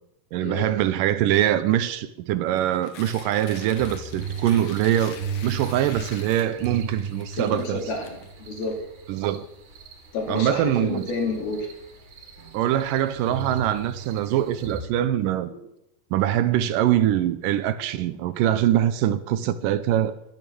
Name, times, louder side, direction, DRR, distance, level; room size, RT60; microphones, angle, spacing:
voice 1, 0.3-7.8 9.1-9.5 10.3-11.1 12.5-15.5 16.1-20.2, right 12 dB, 80° right, 2.1 m, -23 dB
Tearing, 2.5-8.7, left 6 dB, 55° left, 2.0 m, -45 dB
sound 1, 3.8-14.8, right 6 dB, 55° right, 3.7 m, -37 dB
voice 2, 7.4-8.8 10.1-11.7 15.5-15.6, left 3 dB, 80° left, 4.5 m, -29 dB
12.5 x 10.5 x 7.7 m
omnidirectional pair, 4.3 m